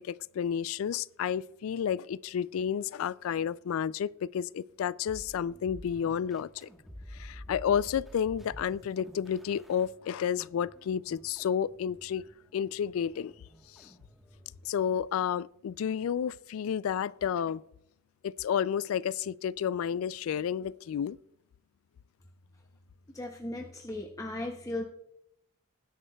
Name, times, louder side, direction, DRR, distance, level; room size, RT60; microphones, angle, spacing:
voice 1, 0.0-6.7 7.1-12.2 12.5-13.3 13.7-13.9 14.6-17.6 18.2-21.2, left 8 dB, 80° left, 0.3 m, -31 dB
sound 1, 5.1-14.8, equal, ahead, 1.2 m, -51 dB
voice 2, 23.1-24.9, left 1 dB, 15° left, 0.7 m, -37 dB
20.0 x 10.0 x 2.3 m
head